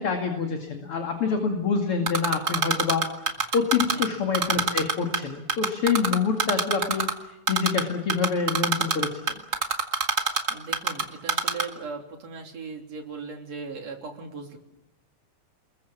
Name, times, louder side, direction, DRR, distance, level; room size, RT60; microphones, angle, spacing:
voice 1, 0.0-3.1 3.5-7.1 7.5-9.1, left 5 dB, 45° left, 3 dB, 2.9 m, -26 dB
Typing, 2.1-4.1 4.3-5.2 5.5-7.1 7.5-7.8 8.1-11.0 11.3-11.6, right 4 dB, 35° right, 2.0 m, -23 dB
voice 2, 10.5-14.6, right 4 dB, 50° right, 2 dB, 4.4 m, -38 dB
29.5 x 22.0 x 7.4 m, 0.87 s
omnidirectional pair, 3.8 m